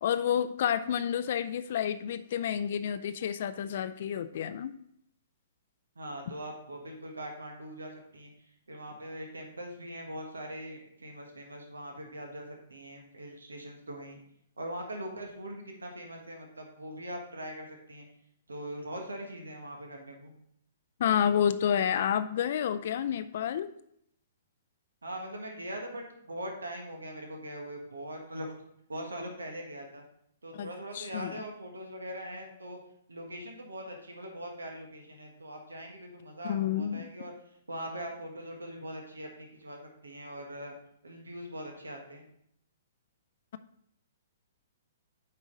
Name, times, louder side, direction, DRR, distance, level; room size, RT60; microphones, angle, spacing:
voice 1, 0.0-4.7 21.0-23.7 30.6-30.7 30.9-31.3 36.4-37.1, left 9 dB, 55° left, 12 dB, 0.4 m, -29 dB
voice 2, 5.9-8.3 8.7-14.2 14.6-18.0 18.5-20.3 25.0-28.5 28.9-30.0 30.4-32.8 33.1-37.3 37.7-40.7 41.0-42.3, right 1 dB, 80° right, 2 dB, 1.5 m, -41 dB
8.4 x 5.0 x 3.9 m, 0.70 s
figure-of-eight pair, 115°, 0 cm